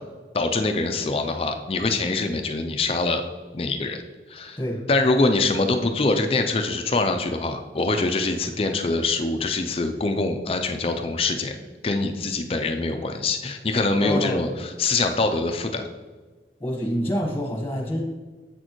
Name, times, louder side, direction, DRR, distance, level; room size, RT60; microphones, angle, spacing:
voice 1, 0.3-3.2 3.5-4.0 4.3-4.6 4.9-11.6 11.8-15.8, left 3 dB, 35° left, 6 dB, 0.4 m, -24 dB
voice 2, 14.0-14.4 16.6-18.0, equal, 15° left, -1 dB, 1.2 m, -27 dB
8.0 x 6.4 x 3.1 m, 1.4 s
head